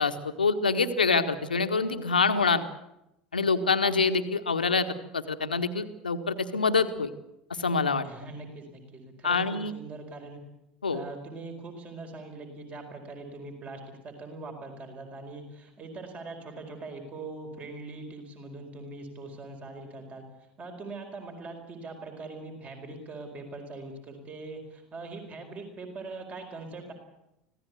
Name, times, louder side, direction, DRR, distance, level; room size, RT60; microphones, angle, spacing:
voice 1, 0.0-2.6 3.3-4.8 5.1-7.1 7.6-8.0 9.2-9.7 10.8-11.0, left 4 dB, 80° left, 8 dB, 1.5 m, -25 dB
voice 2, 8.0-10.4 10.9-20.2 20.6-26.9, right 3 dB, 30° right, 5 dB, 4.7 m, -42 dB
25.0 x 17.0 x 8.3 m, 0.86 s
figure-of-eight pair, 75°, 5 cm